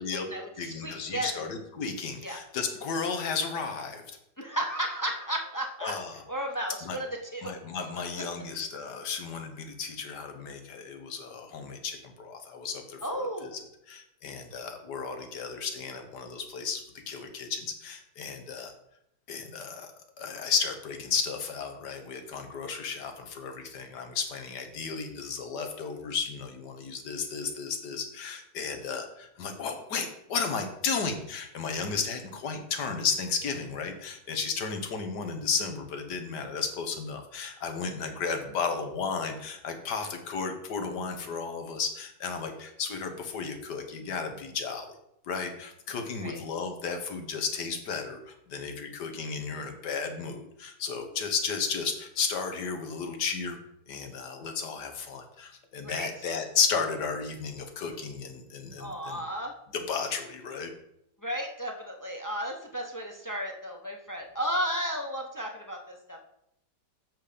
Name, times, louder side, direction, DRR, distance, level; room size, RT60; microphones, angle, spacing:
voice 1, 0.0-1.4 2.2-2.4 4.4-5.9 6.3-7.1 7.3-7.5 13.0-13.6 46.2-46.4 55.8-56.1 58.8-59.5 61.2-66.2, equal, 25° left, 2 dB, 0.4 m, -34 dB
voice 2, 0.6-4.0 5.8-6.2 6.8-7.0 7.4-13.5 13.9-18.7 19.3-19.9 20.2-44.9 45.3-53.6 53.9-59.3 59.7-60.7, left 5 dB, 70° left, 6 dB, 1.7 m, -33 dB
7.8 x 5.9 x 5.1 m, 0.78 s
omnidirectional pair, 1.9 m